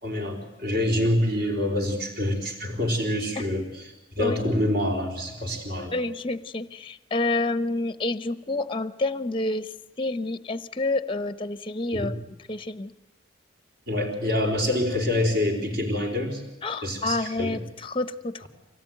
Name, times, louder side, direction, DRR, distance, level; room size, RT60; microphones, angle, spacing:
voice 1, 0.0-3.9 4.2-5.9 11.9-12.1 13.9-16.4 16.8-17.6, left 1 dB, 50° right, 3 dB, 4.2 m, -26 dB
voice 2, 5.9-9.7 10.0-12.1 12.5-12.9 16.6-18.5, left 2 dB, 25° left, 13 dB, 0.8 m, -28 dB
25.0 x 18.0 x 9.3 m, 1.0 s
head